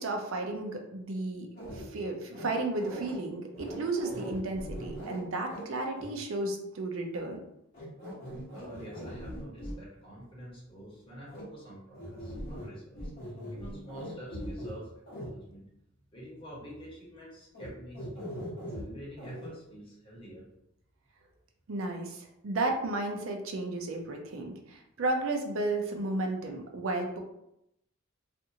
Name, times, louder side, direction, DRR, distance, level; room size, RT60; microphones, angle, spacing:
voice 1, 0.0-1.5 1.7-7.4 21.7-27.2, right 2 dB, 80° right, 3 dB, 0.5 m, -33 dB
sound 1, 1.6-1.9 2.3-3.2 3.5-5.6 6.0-6.1 7.7-9.8 11.3-11.4 11.9-12.7 13.0-14.7 15.1-15.3 17.5-17.7 17.9-18.8 19.2-19.5, equal, 50° left, 1.0 m, -40 dB
voice 2, 8.5-15.6 16.1-18.3 18.7-20.5, equal, 25° left, -6 dB, 1.1 m, -48 dB
2.6 x 2.4 x 2.7 m, 0.81 s
head